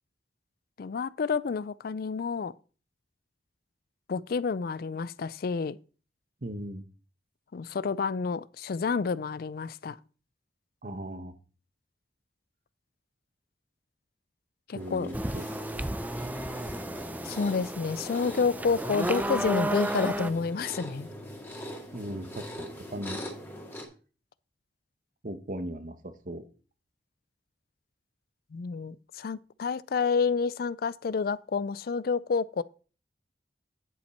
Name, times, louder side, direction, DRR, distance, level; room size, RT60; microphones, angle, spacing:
voice 1, 0.8-2.5 4.1-5.8 7.5-10.0 14.7-15.1 17.2-21.1 28.5-32.6, left 5 dB, 55° left, 0.4 m, -29 dB
voice 2, 6.4-6.8 10.8-11.3 14.7-15.5 15.7-15.9 21.9-23.2 25.2-26.4, right 1 dB, 50° right, 1.1 m, -38 dB
sound 1, 14.8-23.8, equal, 15° left, 2.2 m, -42 dB
sound 2, 15.1-20.3, right 1 dB, 10° right, 0.5 m, -33 dB
10.5 x 7.3 x 4.4 m
head